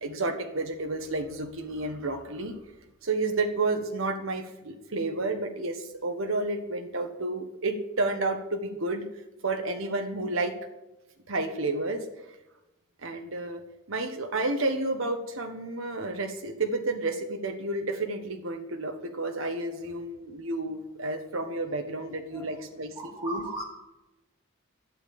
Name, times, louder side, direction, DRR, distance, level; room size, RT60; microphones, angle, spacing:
voice 1, 0.0-2.6 3.0-9.0 9.4-10.5 11.3-12.1 13.0-13.6 13.9-23.4, right 2 dB, 75° right, 4 dB, 1.4 m, -31 dB
voice 2, 23.0-23.6, right 2 dB, 15° right, -6 dB, 2.0 m, -36 dB
12.0 x 9.2 x 8.5 m, 1.0 s
head